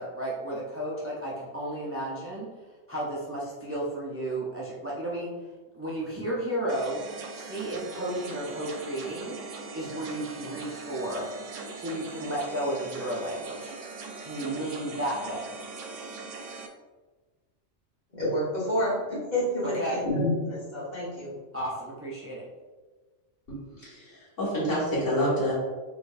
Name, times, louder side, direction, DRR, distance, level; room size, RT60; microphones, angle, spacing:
voice 1, 0.0-2.5 2.9-5.3 5.7-7.0 7.3-9.4 9.7-11.3 11.7-13.8 14.2-15.5 19.6-20.0 21.5-22.5, right 1 dB, 20° right, -6 dB, 0.3 m, -33 dB
sound 1, 6.7-16.7, right 4 dB, 85° right, 1.0 m, -41 dB
voice 2, 18.1-21.3, left 1 dB, 35° left, -7 dB, 1.5 m, -28 dB
voice 3, 23.5-25.5, equal, 80° left, -7 dB, 1.9 m, -28 dB
3.9 x 3.3 x 2.6 m, 1.3 s
omnidirectional pair, 1.3 m